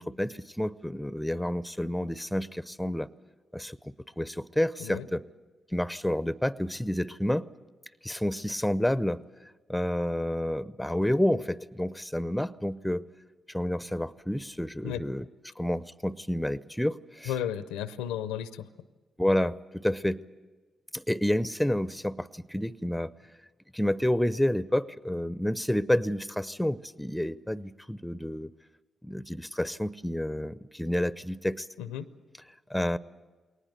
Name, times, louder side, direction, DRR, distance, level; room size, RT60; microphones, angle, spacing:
voice 1, 0.0-3.1 3.5-5.2 5.7-7.5 8.0-9.2 9.7-13.0 13.5-15.3 15.6-17.3 19.2-20.2 20.9-23.1 23.7-28.5 29.0-31.7 32.7-33.0, left 1 dB, 5° left, 17 dB, 0.6 m, -29 dB
voice 2, 17.3-18.7 31.8-32.1, left 10 dB, 90° left, 15 dB, 0.6 m, -33 dB
21.0 x 19.0 x 8.1 m, 1.3 s
hypercardioid pair, 45°, 0 cm